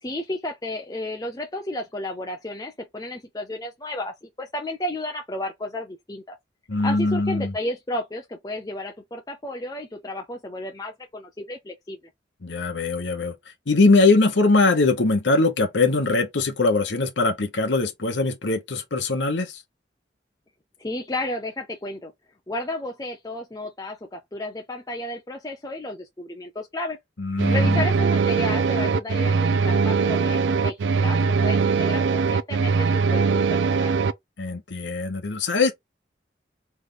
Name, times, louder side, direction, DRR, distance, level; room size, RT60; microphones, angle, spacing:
voice 1, 0.0-6.4 6.8-12.0 20.8-22.1 22.5-27.0 27.3-33.9, left 1 dB, 20° left, 0.6 m, -32 dB
voice 2, 6.7-7.5 12.4-13.3 13.7-19.6 27.2-27.8 34.4-35.7, left 3 dB, 80° left, 1.0 m, -21 dB
sound 1, 27.4-34.1, right 5 dB, 80° right, 0.4 m, -21 dB
3.4 x 3.2 x 3.8 m
head